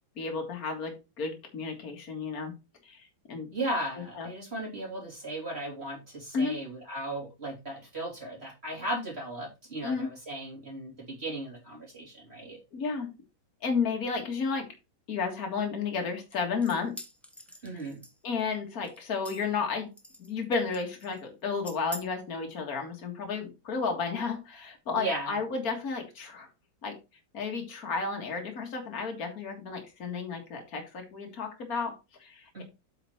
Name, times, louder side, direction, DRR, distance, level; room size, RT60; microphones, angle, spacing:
voice 1, 0.2-2.5 2.8-3.5 4.2-4.3 6.3-6.6 9.8-10.1 12.7-13.1 13.6-14.7 15.1-16.9 18.2-19.9 20.2-26.5 26.8-27.0 27.3-32.6, left 5 dB, 50° left, 3 dB, 2.3 m, -32 dB
voice 2, 3.5-12.6 17.6-18.0 25.0-25.4 32.5-32.6, right 1 dB, 30° right, -1 dB, 3.1 m, -36 dB
sound 1, 16.3-18.4 18.8-19.6 20.0-20.4 20.7-21.2 21.6-22.0, equal, ahead, 0.5 m, -45 dB
8.0 x 5.1 x 4.4 m, 0.26 s
omnidirectional pair, 2.1 m